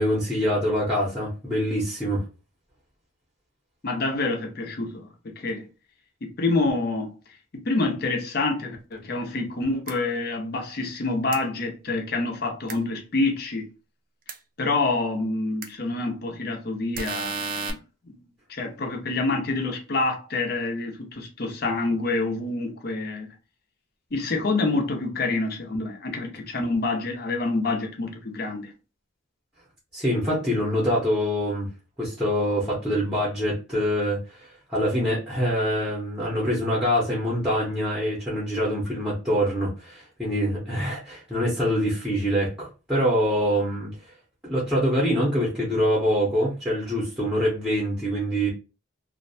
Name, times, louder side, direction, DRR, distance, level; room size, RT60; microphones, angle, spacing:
voice 1, 0.0-2.2 29.9-31.7 32.0-43.9 44.4-48.5, equal, 5° right, 0.7 m, -25 dB
voice 2, 3.8-5.6 6.2-7.1 7.5-13.7 14.6-17.8 18.1-18.2 18.5-23.3 24.1-28.7, left 3 dB, 50° left, 0.6 m, -27 dB
sound 1, 9.9-10.0 11.3-11.4 12.7-12.8 14.3-14.4 15.6-15.7 16.9-17.7, right 4 dB, 45° right, 0.3 m, -31 dB
2.5 x 2.1 x 2.6 m
head